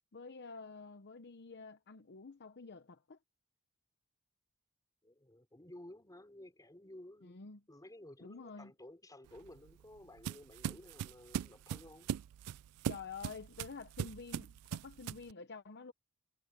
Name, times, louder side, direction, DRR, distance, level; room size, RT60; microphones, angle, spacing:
voice 1, 0.1-3.2 7.2-7.6 8.2-8.7 12.9-15.9, left 4 dB, 50° left, 0.8 m, -49 dB
voice 2, 5.0-7.4 7.7-12.1, left 1 dB, 15° left, 4.2 m, -54 dB
sound 1, 9.3-15.3, right 9 dB, 85° right, 0.3 m, -41 dB
head